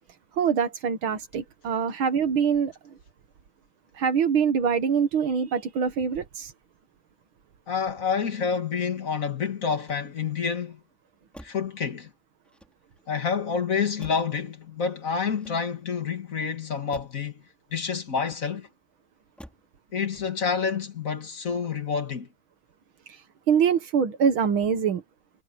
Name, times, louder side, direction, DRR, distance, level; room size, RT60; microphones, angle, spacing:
voice 1, 0.4-2.7 4.0-6.5 23.5-25.0, right 7 dB, 80° right, 2.2 m, -24 dB
voice 2, 7.7-10.8 11.4-12.1 13.1-17.4 17.7-18.7 19.9-22.3, left 6 dB, 45° left, 2.0 m, -28 dB
Motor vehicle (road), 9.7-10.5 11.3-11.8 12.4-13.1 14.0-14.5 15.2-16.0 16.9-17.3 18.2-18.8 19.4-19.8 20.1-20.6, equal, ahead, 3.8 m, -51 dB
omnidirectional pair, 2.2 m